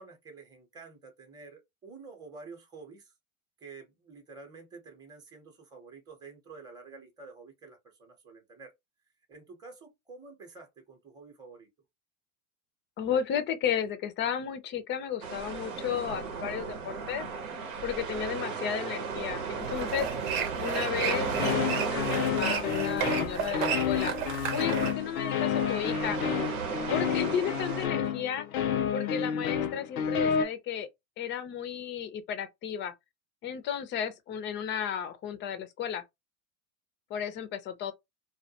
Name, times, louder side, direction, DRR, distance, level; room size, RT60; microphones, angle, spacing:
voice 1, 0.0-3.1 3.6-8.7 9.3-11.7, right 4 dB, 10° right, 0.7 m, -49 dB
voice 2, 13.0-17.2 17.8-20.1 20.6-24.1 24.5-26.2 26.9-28.5 28.9-30.9 31.2-32.9 33.4-36.0 37.1-37.9, left 8 dB, 30° left, 0.4 m, -33 dB
sound 1, 15.2-27.9, right 5 dB, 90° right, 0.9 m, -36 dB
sound 2, 19.6-24.9, right 8 dB, 65° right, 0.8 m, -33 dB
sound 3, 21.0-30.5, left 8 dB, 85° left, 0.6 m, -30 dB
2.2 x 2.2 x 2.7 m
hypercardioid pair, 110°, 42 cm